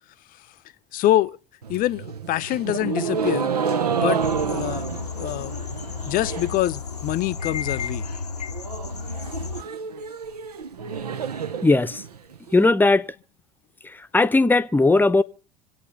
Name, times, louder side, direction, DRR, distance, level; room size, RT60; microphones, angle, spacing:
voice 1, 0.9-1.4 1.7-3.6 4.0-4.9 5.2-5.6 6.1-8.1, left 14 dB, 45° left, 0.7 m, -25 dB
sound 1, 1.6-6.7 6.9-7.5 7.8-7.9 8.1-8.2 8.5-12.5, right 6 dB, 80° right, 0.9 m, -29 dB
sound 2, 4.2-9.6, left 6 dB, 90° left, 0.8 m, -32 dB
voice 2, 11.6-12.0 12.5-13.1 13.8-15.2, left 3 dB, 10° left, 0.8 m, -18 dB
26.0 x 8.9 x 5.4 m
figure-of-eight pair, 70°, 20 cm